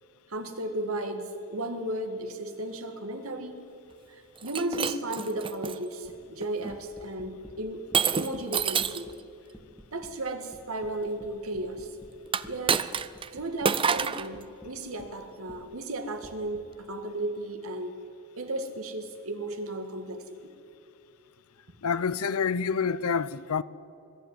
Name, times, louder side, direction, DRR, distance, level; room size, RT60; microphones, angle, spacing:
voice 1, 0.3-3.6 4.1-7.8 8.1-9.1 9.9-11.9 12.4-12.9 13.3-18.0 18.4-20.5, right 1 dB, 70° right, 1.9 m, -34 dB
Shatter, 4.4-5.8 6.4-6.8 7.9-9.1 12.3-13.3 13.6-14.3, right 6 dB, 25° right, 0.5 m, -28 dB
sound 1, 6.0-6.3 6.7-7.6 7.9-9.2 9.5-10.1 10.5-12.2 12.4-15.1 15.5-15.6 16.2-16.6, equal, ahead, 1.6 m, -50 dB
voice 2, 21.8-23.6, left 6 dB, 75° left, 0.6 m, -27 dB
21.5 x 12.5 x 9.5 m
head